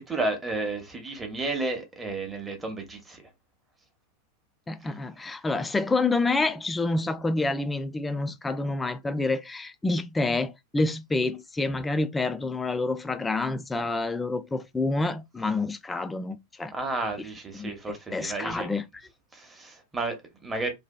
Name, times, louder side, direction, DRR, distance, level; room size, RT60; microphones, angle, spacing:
voice 1, 0.0-3.2 4.8-4.9 16.7-18.7 19.3-20.7, right 2 dB, 15° right, 0.8 m, -32 dB
voice 2, 4.7-16.7 17.5-18.8, left 3 dB, 10° left, 0.3 m, -28 dB
2.6 x 2.3 x 2.3 m
figure-of-eight pair, 90°, 0 cm